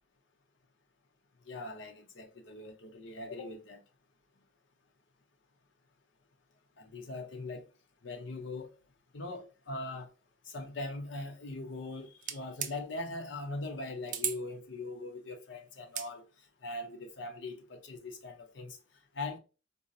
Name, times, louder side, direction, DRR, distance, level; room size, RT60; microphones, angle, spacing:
voice 1, 1.5-3.8 6.8-7.7 8.0-8.7 9.1-10.1 10.5-16.2 16.6-18.8 19.1-19.4, left 2 dB, 70° left, 0.6 m, -41 dB
sound 1, 12.2-12.7 14.1-14.4 15.8-16.1, right 9 dB, 40° right, 0.3 m, -35 dB
3.8 x 2.0 x 2.6 m
head